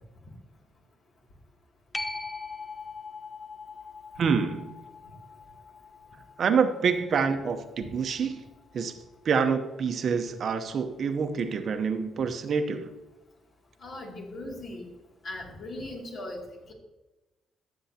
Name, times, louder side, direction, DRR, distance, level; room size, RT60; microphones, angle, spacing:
sound 1, 1.9-9.1 14.6-14.7, left 3 dB, 15° left, 0.6 m, -42 dB
voice 1, 4.2-4.7 6.4-8.4 8.7-9.0 9.2-12.9, right 6 dB, 55° right, 7 dB, 0.8 m, -27 dB
voice 2, 13.8-14.9 15.2-16.7, left 1 dB, 60° left, -1 dB, 2.5 m, -39 dB
14.0 x 7.1 x 2.8 m, 1.1 s
cardioid pair, 90°, 0 cm